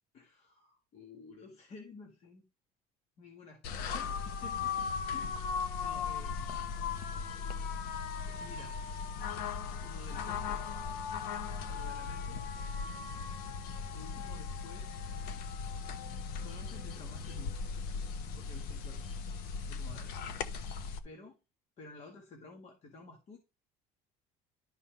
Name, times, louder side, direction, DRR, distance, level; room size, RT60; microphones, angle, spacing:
voice 1, 0.1-2.4 3.2-6.5 8.3-8.8 9.8-10.6 11.6-12.4 13.9-15.0 16.4-17.6 18.3-19.1 19.7-20.1 21.0-21.3 21.8-23.4, left 4 dB, 40° left, 2 dB, 1.8 m, -52 dB
sound 1, 3.6-21.0, left 5 dB, 70° left, 1.1 m, -38 dB
12.0 x 5.5 x 3.4 m, 0.29 s
cardioid pair, 155°, 17 cm